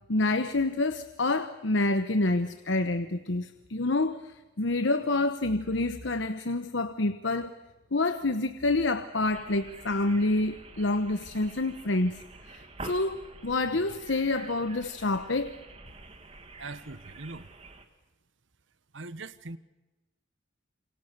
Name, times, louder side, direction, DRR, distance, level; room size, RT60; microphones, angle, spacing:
voice 1, 0.1-7.6 7.9-15.6, left 2 dB, 70° left, 9 dB, 1.0 m, -28 dB
sound 1, 9.2-17.9, right 3 dB, 30° right, 2.2 m, -47 dB
voice 2, 16.6-17.5 18.9-19.6, right 3 dB, 75° right, 14 dB, 1.2 m, -41 dB
28.5 x 26.0 x 6.7 m, 1.1 s
head